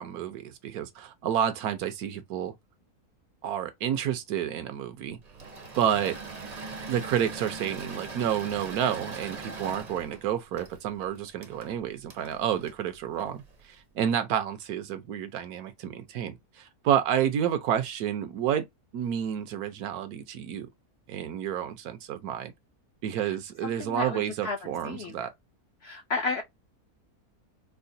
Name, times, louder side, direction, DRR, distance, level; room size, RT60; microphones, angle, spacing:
voice 1, 0.0-2.5 3.4-5.2 5.7-6.2 6.9-18.7 18.9-20.7 21.1-22.5 23.0-25.3, right 9 dB, 75° right, 1.2 m, -30 dB
Engine / Mechanisms, 5.2-13.6, right 3 dB, 40° right, 0.6 m, -41 dB
voice 2, 23.6-25.2 25.8-26.4, left 4 dB, 60° left, 0.6 m, -33 dB
4.8 x 2.1 x 2.6 m
omnidirectional pair, 1.6 m